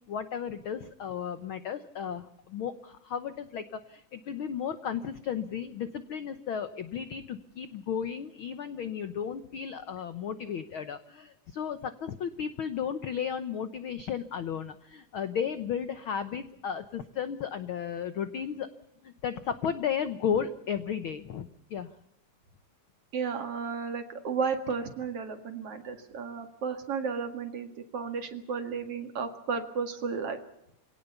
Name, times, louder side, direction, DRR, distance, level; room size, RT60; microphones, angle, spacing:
voice 1, 0.1-18.7 19.0-21.9, left 8 dB, 80° left, 11 dB, 1.1 m, -34 dB
voice 2, 23.1-30.4, right 5 dB, 50° right, 7 dB, 2.7 m, -33 dB
25.5 x 18.0 x 7.0 m, 0.76 s
omnidirectional pair, 3.7 m